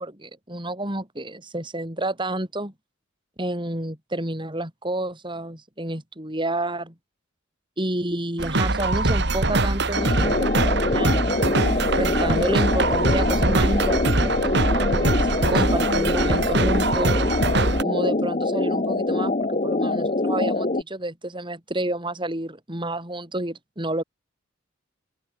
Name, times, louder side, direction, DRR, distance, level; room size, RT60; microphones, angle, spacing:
voice 1, 0.0-2.7 3.4-6.9 7.8-11.2 11.9-17.2 17.8-24.0, right 1 dB, 25° right, 6.3 m, -30 dB
sound 1, 8.4-17.8, right 2 dB, 60° right, 2.5 m, -23 dB
sound 2, 10.0-20.8, left 2 dB, 35° left, 1.1 m, -24 dB
open air
head